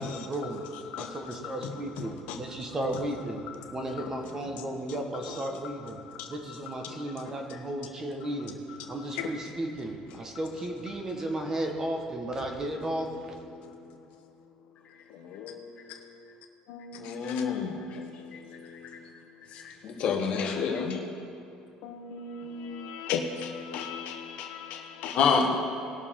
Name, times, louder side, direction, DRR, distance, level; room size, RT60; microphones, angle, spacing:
voice 1, 0.0-0.7 1.0-3.4 3.7-8.6 8.9-13.3, right 1 dB, 25° right, 3 dB, 1.4 m, -34 dB
voice 2, 0.9-2.4 4.0-4.1 4.9-5.7 6.2-7.6 9.2-9.3 12.8-12.9 13.5-14.0 15.1-19.2 20.5-25.2, left 6 dB, 75° left, 4 dB, 1.0 m, -40 dB
voice 3, 17.0-18.0 19.5-21.1 25.1-25.6, left 5 dB, 55° left, 1 dB, 1.7 m, -27 dB
19.5 x 6.6 x 3.8 m, 2.7 s
cardioid pair, 130°, 2 cm